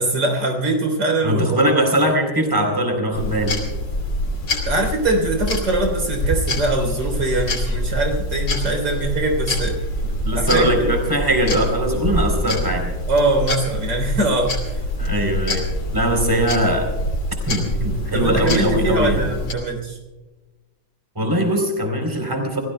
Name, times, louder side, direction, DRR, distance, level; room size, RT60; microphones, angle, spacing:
voice 1, 0.0-1.4 4.7-9.8 10.3-10.9 13.1-14.5 18.1-20.0, right 2 dB, 80° right, 3 dB, 4.2 m, -22 dB
voice 2, 1.2-3.6 10.2-12.9 15.0-16.9 17.5-19.3 21.2-22.6, right 1 dB, 10° right, 3 dB, 3.8 m, -21 dB
sound 1, 3.1-19.5, left 1 dB, 75° left, 3.3 m, -25 dB
29.0 x 17.5 x 2.2 m, 1.2 s
omnidirectional pair, 1.9 m